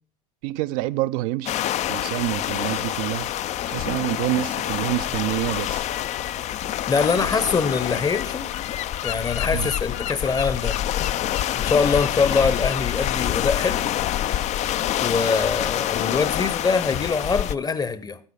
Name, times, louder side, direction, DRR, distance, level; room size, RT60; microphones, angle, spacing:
voice 1, 0.4-1.5 1.9-3.3 3.7-5.9 9.5-9.7, right 16 dB, 55° right, 0.5 m, -27 dB
sound 1, 1.5-17.5, left 12 dB, 35° left, 0.4 m, -26 dB
sound 2, 1.9-8.4, left 7 dB, 75° left, 2.1 m, -47 dB
voice 2, 6.9-8.5 9.0-10.8 11.5-13.8 15.0-18.2, left 5 dB, 20° left, 0.8 m, -23 dB
10.0 x 8.0 x 6.2 m
hypercardioid pair, 90°, 21 cm